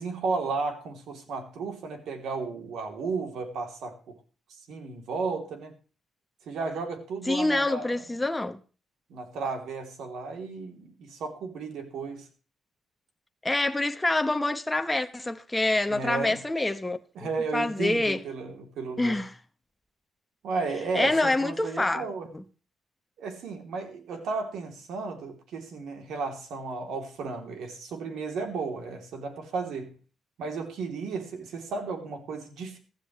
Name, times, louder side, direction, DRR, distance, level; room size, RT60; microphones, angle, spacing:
voice 1, 0.0-4.2 4.5-5.7 6.5-8.0 9.1-12.2 15.9-16.4 17.1-19.2 20.4-22.3 23.2-30.0 30.4-32.8, right 4 dB, 75° right, 3.1 m, -34 dB
voice 2, 7.3-8.6 13.4-17.0 17.5-18.2 19.0-19.3 20.9-22.0 22.3-22.4, left 2 dB, 10° left, 1.0 m, -26 dB
15.5 x 14.0 x 3.2 m
cardioid pair, 90°, 0 cm